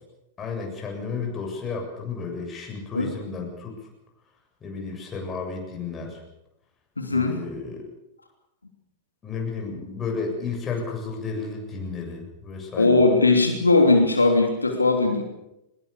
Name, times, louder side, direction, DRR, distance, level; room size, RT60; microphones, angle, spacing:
voice 1, 0.4-3.8 4.6-6.2 7.1-7.8 9.2-13.0, left 4 dB, 25° left, 1 dB, 7.2 m, -32 dB
voice 2, 7.0-7.4 12.8-15.2, left 3 dB, 85° left, 3 dB, 3.1 m, -19 dB
22.0 x 21.0 x 6.9 m, 0.88 s
figure-of-eight pair, 100°, 0 cm